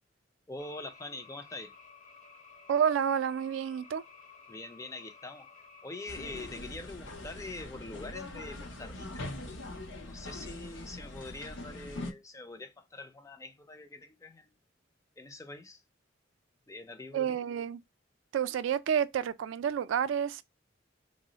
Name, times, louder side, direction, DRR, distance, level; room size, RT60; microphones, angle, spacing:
voice 1, 0.5-1.7 4.5-5.5 5.8-9.3 10.0-14.5 15.2-15.8 16.7-17.4, left 2 dB, 15° left, 0.4 m, -44 dB
sound 1, 0.6-6.6, left 5 dB, 40° left, 0.8 m, -54 dB
voice 2, 2.7-4.0 17.1-17.8 18.3-20.4, right 8 dB, 75° right, 0.3 m, -29 dB
sound 2, 6.1-12.1, left 2 dB, 70° left, 0.6 m, -42 dB
3.0 x 2.0 x 3.8 m
head